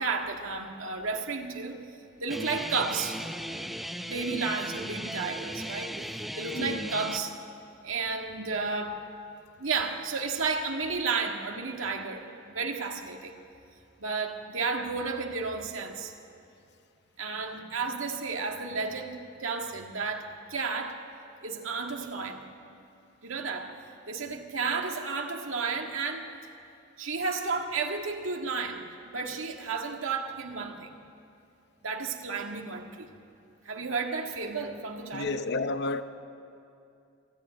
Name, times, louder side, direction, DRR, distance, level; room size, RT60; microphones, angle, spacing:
voice 1, 0.0-1.8 2.2-3.2 4.1-6.0 6.4-7.3 7.8-9.0 9.6-12.3 12.5-13.4 14.0-16.1 17.2-21.0 21.4-22.4 23.2-23.8 24.1-26.3 27.0-28.9 29.1-30.9 31.8-33.1 33.7-35.4, right 4 dB, 75° right, 1.8 m, -32 dB
Guitar, 2.3-7.2, equal, ahead, 0.7 m, -37 dB
voice 2, 35.1-36.0, left 3 dB, 55° left, 0.8 m, -30 dB
26.5 x 11.5 x 9.2 m
head